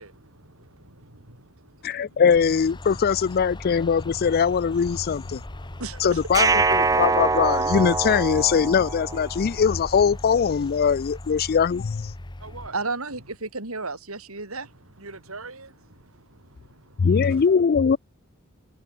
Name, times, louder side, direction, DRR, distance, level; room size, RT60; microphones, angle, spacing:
voice 1, 0.0-6.1 12.4-13.4 14.6-18.0, right 3 dB, 70° right, 6.4 m, -48 dB
voice 2, 1.8-5.4 6.0-12.1 17.0-18.0, left 6 dB, 45° left, 0.4 m, -21 dB
sound 1, 2.3-12.7, left 1 dB, 20° left, 1.0 m, -39 dB
voice 3, 5.8-6.2 12.7-14.7, right 3 dB, 90° right, 6.6 m, -32 dB
sound 2, 6.3-9.4, right 4 dB, 15° right, 0.5 m, -23 dB
head